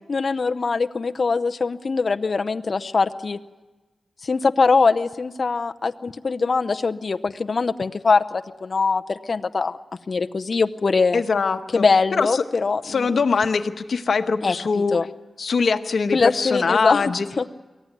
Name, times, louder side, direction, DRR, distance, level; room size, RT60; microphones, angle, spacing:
voice 1, 0.1-3.4 4.2-9.8 10.1-11.2 11.7-12.8 14.4-14.5 14.9-15.1 16.1-17.5, left 4 dB, 55° left, 8 dB, 0.7 m, -22 dB
voice 2, 11.1-11.8 12.1-12.4 12.8-15.0 15.4-17.3, left 5 dB, 75° left, 8 dB, 1.2 m, -22 dB
23.5 x 16.0 x 9.5 m, 1.2 s
cardioid pair, 65°, 0 cm